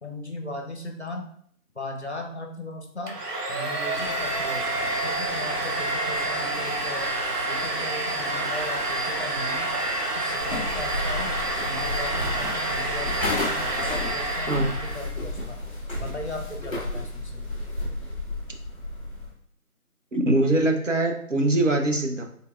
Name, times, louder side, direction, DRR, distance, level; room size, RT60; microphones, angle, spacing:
voice 1, 0.0-1.3 1.7-3.2 3.5-7.2 7.4-9.7 10.1-11.3 11.6-15.6 16.0-17.4, left 2 dB, 45° left, 3 dB, 0.7 m, -37 dB
Domestic sounds home sounds, 3.1-15.2, right 2 dB, 90° right, 0.9 m, -28 dB
sound 1, 3.9-13.9, left 1 dB, 30° right, 1.4 m, -40 dB
sound 2, 10.4-19.3, left 2 dB, 20° left, 1.6 m, -32 dB
voice 2, 20.1-22.2, right 2 dB, 55° right, 3 dB, 0.7 m, -22 dB
4.6 x 3.3 x 2.3 m, 0.64 s
figure-of-eight pair, 165°, 45 cm